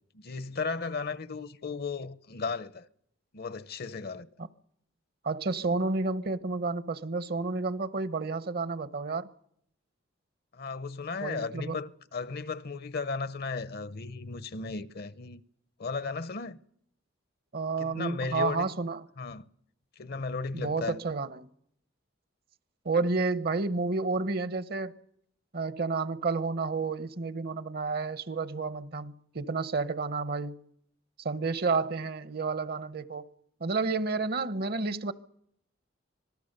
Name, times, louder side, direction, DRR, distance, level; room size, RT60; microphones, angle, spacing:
voice 1, 0.1-2.9 3.3-4.3 10.5-15.4 15.8-16.6 17.8-18.7 19.2-19.5 20.0-21.0, left 4 dB, 55° left, 0.8 m, -35 dB
voice 2, 5.2-9.3 11.2-11.8 17.5-19.0 20.5-21.5 22.8-24.9 25.5-30.6 31.2-33.3 33.6-35.1, right 3 dB, 50° right, 0.9 m, -30 dB
26.0 x 19.0 x 6.7 m
head